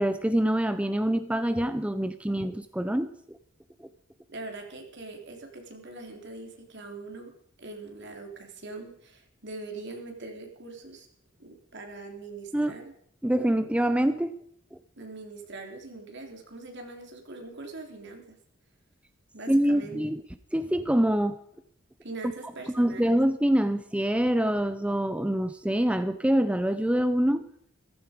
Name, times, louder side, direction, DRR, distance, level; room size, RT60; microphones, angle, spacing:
voice 1, 0.0-3.4 3.8-3.9 12.5-12.7 13.2-14.4 19.5-20.2 20.5-21.4 22.7-27.5, right 1 dB, 5° right, 11 dB, 0.5 m, -25 dB
voice 2, 4.3-7.3 7.6-11.1 11.4-12.9 15.0-18.4 19.3-20.0 22.0-23.1, right 3 dB, 60° right, 4 dB, 3.2 m, -42 dB
15.0 x 15.0 x 5.1 m, 0.67 s
head